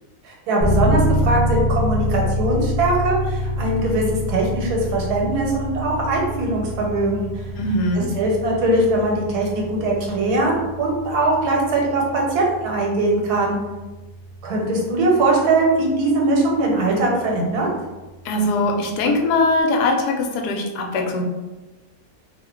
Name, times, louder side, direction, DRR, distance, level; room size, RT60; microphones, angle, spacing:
voice 1, 0.2-7.4 8.2-13.6 14.4-17.7, right 2 dB, 85° right, -1 dB, 1.3 m, -21 dB
sound 1, 0.6-17.3, equal, 30° left, 0.5 m, -27 dB
voice 2, 7.6-8.1 18.2-21.2, left 2 dB, 80° left, 2 dB, 1.1 m, -21 dB
2.7 x 2.2 x 3.6 m, 1.2 s
omnidirectional pair, 1.7 m